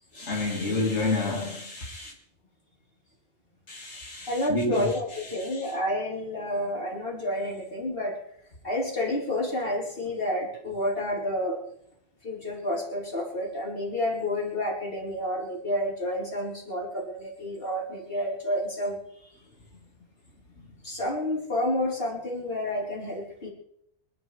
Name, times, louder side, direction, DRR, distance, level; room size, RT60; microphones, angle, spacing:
voice 1, 0.1-2.1 3.7-5.7, left 2 dB, 80° left, 2.5 m, -30 dB
voice 2, 4.3-8.2 8.6-11.6 12.2-19.0 20.8-23.5, left 1 dB, 55° left, 4.5 m, -30 dB
25.5 x 12.0 x 3.5 m
omnidirectional pair, 1.2 m